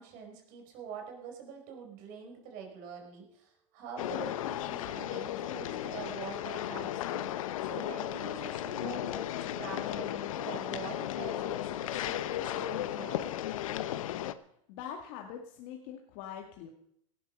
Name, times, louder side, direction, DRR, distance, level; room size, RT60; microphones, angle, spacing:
voice 1, 0.0-13.3, right 6 dB, 50° right, 2 dB, 5.1 m, -45 dB
sound 1, 4.0-14.3, left 12 dB, 75° left, 1.0 m, -35 dB
voice 2, 14.7-16.7, left 8 dB, 60° left, 3 dB, 2.0 m, -43 dB
17.0 x 12.0 x 5.5 m, 0.71 s
hypercardioid pair, 110°, 17 cm